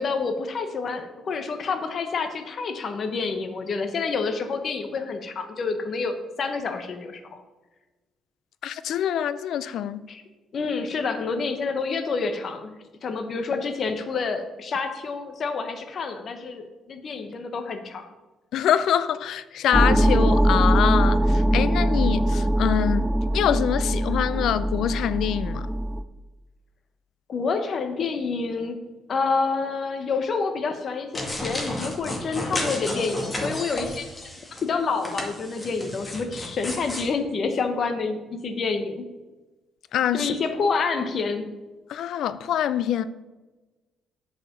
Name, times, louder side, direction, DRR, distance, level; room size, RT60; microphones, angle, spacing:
voice 1, 0.0-7.4 10.1-10.2 10.5-12.8 13.0-18.1 27.3-28.8 29.1-34.1 34.6-39.0 40.1-41.4, left 4 dB, 45° left, 1.2 m, -28 dB
voice 2, 8.6-10.0 18.5-25.7 39.9-40.3 41.9-43.0, left 10 dB, 70° left, 0.5 m, -25 dB
sound 1, 19.7-26.0, right 1 dB, 5° right, 0.5 m, -21 dB
sound 2, 31.1-34.6 35.0-37.1, left 1 dB, 20° left, 2.0 m, -32 dB
8.4 x 5.0 x 6.8 m
cardioid pair, 110°, 0 cm